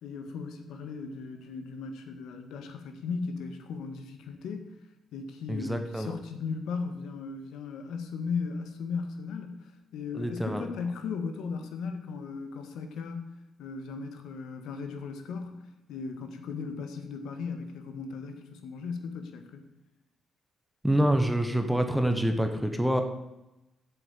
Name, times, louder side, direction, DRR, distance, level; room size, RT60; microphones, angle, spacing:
voice 1, 0.0-4.7 5.1-13.3 13.6-19.6, left 5 dB, 90° left, 7 dB, 1.7 m, -37 dB
voice 2, 5.5-6.1 10.1-10.6 20.8-23.0, right 1 dB, 5° right, 6 dB, 1.0 m, -26 dB
8.7 x 7.7 x 8.2 m, 0.94 s
cardioid pair, 180°, 0 cm